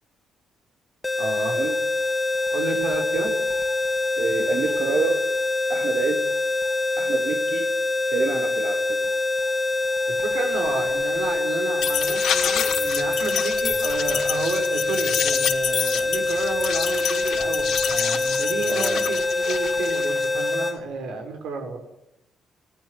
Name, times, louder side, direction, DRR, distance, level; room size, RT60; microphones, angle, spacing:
sound 1, 1.0-20.8, left 2 dB, 15° left, 2.7 m, -25 dB
voice 1, 1.2-1.6 2.5-3.3 10.1-21.8, right 4 dB, 85° right, 4 dB, 6.2 m, -31 dB
sound 2, 1.7-1.8 2.0-2.1 2.3-5.5 6.3-6.4 6.6-6.7 7.0-7.1 9.0-9.1 9.4-9.5 9.8-20.8, left 9 dB, 70° left, 2.7 m, -30 dB
voice 2, 4.2-5.2 5.7-6.2 7.0-7.6 8.1-9.0 18.7-19.0, right 5 dB, 60° right, 3 dB, 3.1 m, -27 dB
25.5 x 18.0 x 9.8 m, 0.86 s
cardioid pair, 90°, 0 cm